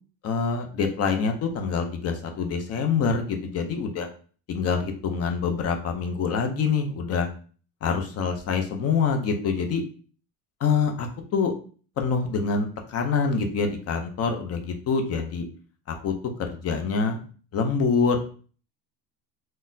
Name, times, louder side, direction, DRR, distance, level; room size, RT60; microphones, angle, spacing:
voice 1, 0.2-4.1 4.5-7.3 7.8-9.8 10.6-11.6 12.0-15.5 16.0-17.2 17.5-18.2, left 5 dB, 40° left, 5 dB, 0.5 m, -25 dB
3.9 x 2.1 x 2.6 m, 0.41 s
cardioid pair, 135°, 41 cm